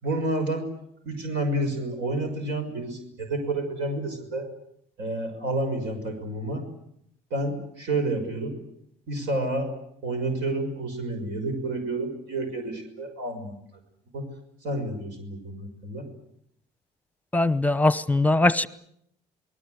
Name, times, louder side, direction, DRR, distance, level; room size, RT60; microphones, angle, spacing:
voice 1, 0.0-0.7 1.0-4.5 5.0-6.6 7.3-8.5 9.1-9.7 10.0-13.5 14.1-14.3 14.6-16.1, right 2 dB, 80° right, 5 dB, 6.1 m, -29 dB
voice 2, 17.3-18.7, left 2 dB, 10° left, 16 dB, 0.9 m, -21 dB
28.0 x 20.0 x 8.0 m, 0.73 s
cardioid pair, 110°, 17 cm